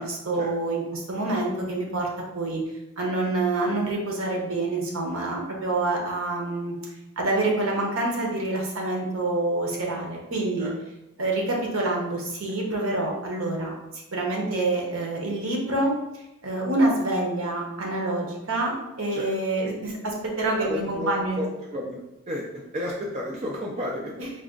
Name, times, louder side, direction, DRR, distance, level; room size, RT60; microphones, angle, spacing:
voice 1, 0.0-2.1 2.3-2.6 3.0-6.7 7.2-10.7 11.2-15.9 16.4-21.4 24.2-24.3, right 2 dB, 70° right, -1 dB, 0.9 m, -27 dB
voice 2, 20.6-24.3, left 1 dB, 30° right, -3 dB, 0.4 m, -32 dB
4.0 x 2.4 x 3.7 m, 0.93 s
head